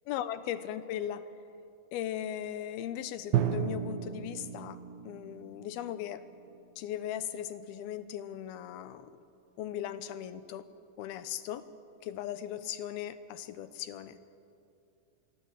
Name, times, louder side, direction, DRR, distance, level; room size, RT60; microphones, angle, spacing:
voice 1, 0.1-1.2 1.9-4.8 5.0-6.2 6.8-9.1 9.6-10.7 11.0-11.7 12.0-14.2, left 11 dB, 85° left, 12 dB, 2.9 m, -38 dB
Drum, 3.3-7.1, right 10 dB, 80° right, 2.8 m, -34 dB
26.5 x 23.5 x 8.2 m, 2.7 s
omnidirectional pair, 4.3 m